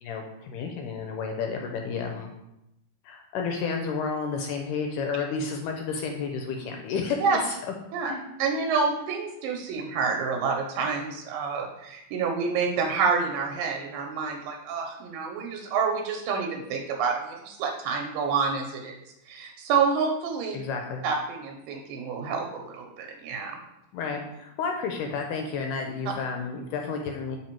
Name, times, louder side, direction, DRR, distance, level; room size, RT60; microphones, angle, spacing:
voice 1, 0.0-2.3 3.1-7.6 8.1-8.2 20.5-21.0 23.9-27.4, left 5 dB, 80° left, 2 dB, 2.1 m, -31 dB
voice 2, 8.4-19.0 19.3-20.6 21.0-23.6, right 5 dB, 85° right, 2 dB, 2.3 m, -28 dB
6.1 x 4.4 x 4.4 m, 0.86 s
omnidirectional pair, 4.1 m